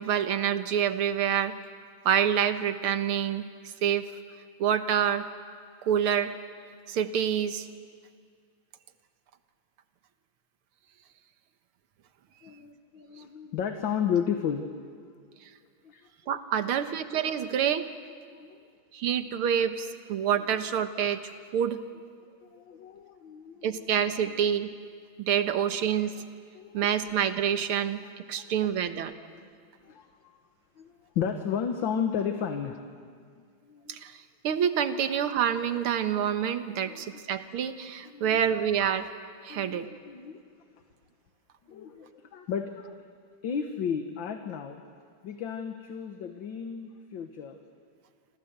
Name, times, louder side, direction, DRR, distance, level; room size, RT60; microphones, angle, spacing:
voice 1, 0.0-1.6 2.1-3.5 3.8-4.0 4.6-5.2 5.8-6.4 6.9-7.7 16.3-17.9 18.9-21.8 23.6-24.7 25.2-26.2 26.7-29.1 33.9-34.2 34.4-39.1 39.4-39.9, right 9 dB, 85° right, 9 dB, 2.1 m, -27 dB
voice 2, 12.4-15.0 15.9-16.0 18.4-18.6 22.4-23.7 24.2-24.3 25.5-25.6 26.6-26.8 28.4-28.9 29.8-30.4 30.8-30.9 31.2-33.1 33.7-34.0 36.8-37.0 38.1-38.4 39.5-40.4 41.7-42.9 43.4-44.8 45.2-47.6, left 7 dB, 65° left, 6 dB, 1.9 m, -33 dB
28.5 x 26.0 x 8.0 m, 2.1 s
omnidirectional pair, 2.3 m